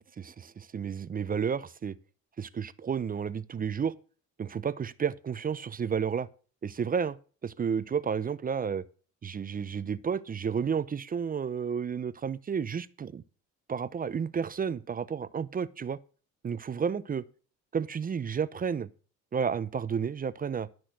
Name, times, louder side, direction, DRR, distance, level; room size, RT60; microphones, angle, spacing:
voice 1, 0.0-2.0 2.4-3.9 4.4-6.3 6.6-7.2 7.4-8.8 9.2-13.2 13.7-16.0 16.4-17.2 17.7-18.9 19.3-20.7, right 6 dB, 30° right, 0.5 m, -31 dB
13.0 x 6.2 x 6.1 m
cardioid pair, 110°, 30 cm